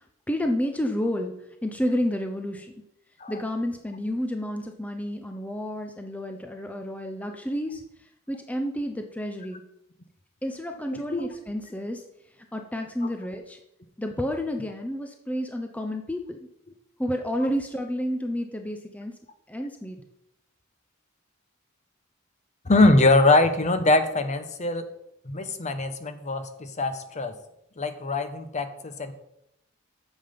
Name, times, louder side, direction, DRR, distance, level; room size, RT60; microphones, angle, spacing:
voice 1, 0.3-1.3 1.6-2.7 3.3-7.8 8.3-9.6 10.4-12.0 12.5-13.6 14.0-16.4 17.0-19.2 19.5-20.0, equal, 5° left, 4 dB, 0.6 m, -30 dB
voice 2, 10.9-11.3 22.7-24.8 25.3-27.3 27.8-29.1, left 2 dB, 35° left, 9 dB, 0.9 m, -22 dB
9.5 x 7.2 x 5.2 m, 0.80 s
head